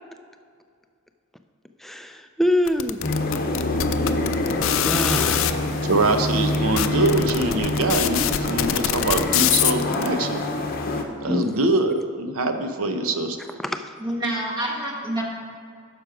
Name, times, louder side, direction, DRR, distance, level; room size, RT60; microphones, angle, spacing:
voice 1, 1.8-3.0 4.8-5.6 11.2-11.5 13.6-14.0, left 1 dB, ahead, 7 dB, 0.3 m, -25 dB
sound 1, 2.7-5.5 6.2-6.3 6.5-10.1, left 12 dB, 65° left, 0.4 m, -23 dB
sound 2, 3.0-11.0, left 2 dB, 45° left, 0.8 m, -26 dB
voice 2, 5.8-10.4 11.2-13.4, right 2 dB, 85° right, 7 dB, 0.7 m, -23 dB
voice 3, 14.0-15.2, right 1 dB, 20° right, -1 dB, 1.2 m, -27 dB
9.6 x 6.3 x 4.9 m, 2.1 s
head